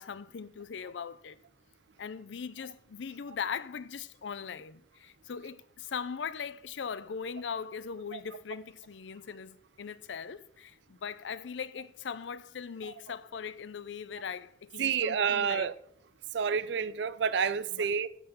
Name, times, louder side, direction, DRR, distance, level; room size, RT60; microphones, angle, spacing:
voice 1, 0.0-1.4 2.0-15.7 17.7-17.9, left 6 dB, 80° left, 0.5 m, -40 dB
voice 2, 14.8-15.7 16.3-18.1, right 7 dB, 70° right, 0.4 m, -29 dB
11.0 x 3.8 x 6.8 m
head